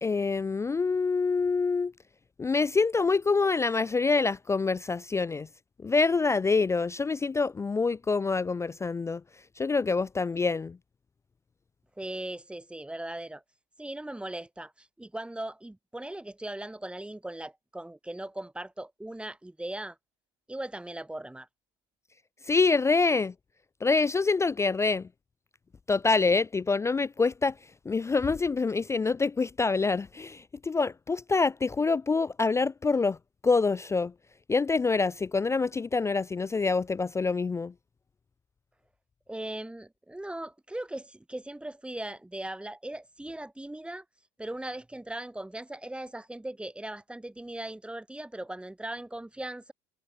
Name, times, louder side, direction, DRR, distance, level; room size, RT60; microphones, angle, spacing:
voice 1, 0.0-1.9 2.4-5.5 5.8-9.2 9.6-10.8 22.5-23.3 23.8-25.1 25.9-27.5 27.9-33.2 33.4-34.1 34.5-37.7, left 4 dB, 15° left, 0.3 m, -26 dB
voice 2, 12.0-13.4 13.8-20.0 20.5-21.5 39.3-44.0 44.4-49.7, right 1 dB, 5° right, 1.0 m, -39 dB
hypercardioid pair, 75°, 17 cm